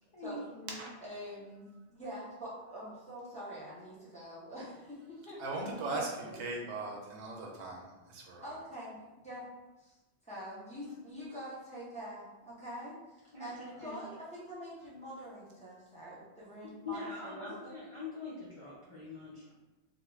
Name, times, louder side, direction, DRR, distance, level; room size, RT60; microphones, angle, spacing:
voice 1, 0.1-0.8 5.8-6.4 10.8-11.0 13.3-14.0 16.8-19.5, left 3 dB, 50° left, -8 dB, 0.4 m, -44 dB
voice 2, 1.0-5.6 8.4-9.0 9.2-9.5 9.8-10.0 10.2-17.7, equal, 10° left, -9 dB, 0.6 m, -45 dB
voice 3, 5.4-8.6, right 2 dB, 75° right, -1 dB, 0.9 m, -39 dB
2.3 x 2.3 x 3.1 m, 1.1 s
omnidirectional pair, 1.1 m